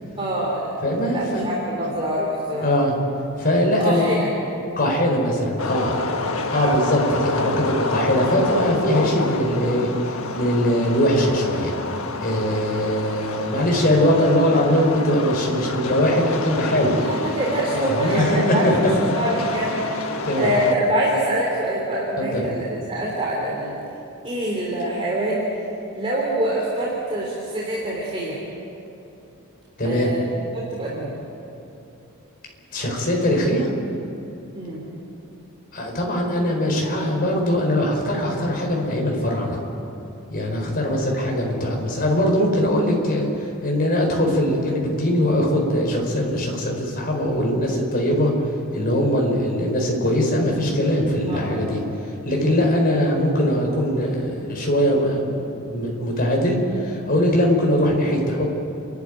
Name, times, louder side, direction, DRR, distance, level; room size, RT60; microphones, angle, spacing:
voice 1, 0.2-2.7 3.8-4.3 6.2-6.4 17.0-18.7 19.0-23.7 24.2-25.4 25.9-28.4 29.8-30.2 30.5-31.2 34.5-34.8 51.3-51.6, right 1 dB, 25° right, -5 dB, 3.4 m, -25 dB
voice 2, 0.8-1.5 2.6-2.9 3.4-4.1 4.8-6.0 6.5-11.7 12.2-17.0 17.7-18.4 18.6-18.9 20.2-20.5 22.3-22.4 29.8-30.1 32.7-33.7 35.7-39.6 40.3-48.3 48.7-51.8 52.2-58.4, equal, 45° left, 0 dB, 4.7 m, -21 dB
sound 1, 5.6-20.7, left 3 dB, 80° left, 1.4 m, -28 dB
29.5 x 12.5 x 9.2 m, 2.8 s
head